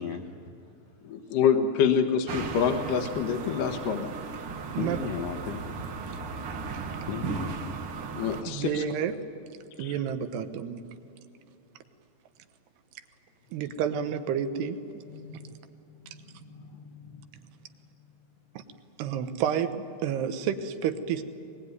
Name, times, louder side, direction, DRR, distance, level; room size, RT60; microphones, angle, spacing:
voice 1, 0.0-0.9 4.8-5.7 6.4-6.6 6.8-7.8 15.1-15.5 15.9-17.5 18.0-18.1, left 6 dB, 90° left, 1.4 m, -38 dB
voice 2, 1.0-4.1 8.1-8.8 9.8-9.9, left 7 dB, 65° left, 2.6 m, -26 dB
sound 1, 2.3-8.4, right 5 dB, 60° right, 1.5 m, -36 dB
voice 3, 8.5-9.2 9.8-10.9 13.5-14.8 15.2-15.6 18.6-18.7 19.0-21.2, right 8 dB, 90° right, 3.3 m, -30 dB
22.0 x 21.5 x 9.6 m
omnidirectional pair, 4.6 m